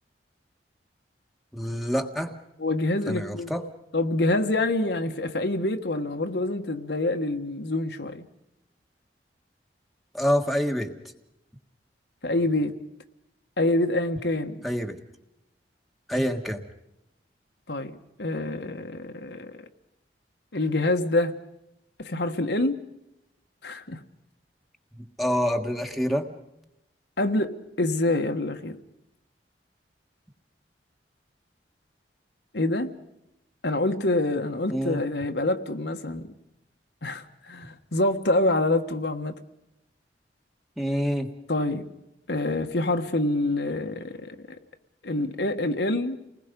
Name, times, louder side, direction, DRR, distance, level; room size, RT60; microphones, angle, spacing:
voice 1, 1.5-2.3 3.1-3.6 10.1-10.9 14.6-15.0 16.1-16.6 25.0-26.3 34.7-35.0 40.8-41.3, equal, ahead, 1.5 m, -26 dB
voice 2, 2.6-3.5 3.9-8.3 12.2-12.7 13.6-14.6 17.7-19.6 20.5-21.4 22.0-22.8 23.6-24.0 27.2-28.8 32.5-32.9 33.6-36.3 37.0-39.3 41.5-41.8 42.3-44.6 45.0-46.2, left 2 dB, 70° left, 1.5 m, -26 dB
30.0 x 20.0 x 5.3 m
head